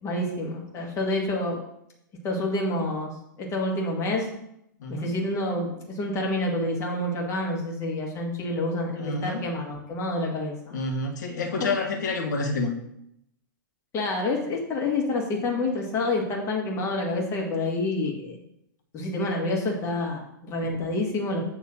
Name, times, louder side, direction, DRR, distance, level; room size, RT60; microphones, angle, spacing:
voice 1, 0.0-1.6 2.2-3.1 3.4-4.3 4.9-10.8 11.6-11.7 13.9-18.4 18.9-21.4, left 2 dB, 25° left, 0 dB, 1.7 m, -28 dB
voice 2, 4.8-5.1 9.0-9.4 10.7-12.7, left 3 dB, 60° left, 2 dB, 1.3 m, -28 dB
7.3 x 3.2 x 6.1 m, 0.78 s
figure-of-eight pair, 105°, 11 cm